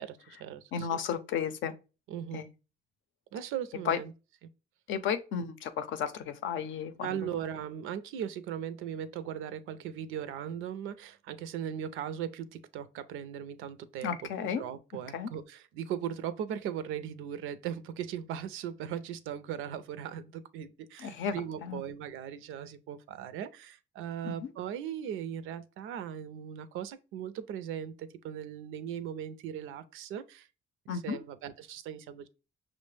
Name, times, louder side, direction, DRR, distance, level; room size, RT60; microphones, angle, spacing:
voice 1, 0.0-1.0 2.1-2.5 3.3-4.1 7.0-14.2 14.6-30.5 30.9-32.3, right 9 dB, 90° right, 0.5 m, -38 dB
voice 2, 0.7-1.7 2.3-2.5 3.9-4.0 4.9-7.3 14.0-14.6 15.1-15.3 21.0-21.8 24.2-24.5 30.9-31.2, left 7 dB, 75° left, 0.5 m, -33 dB
5.8 x 2.1 x 3.2 m
cardioid pair, 90°, 20 cm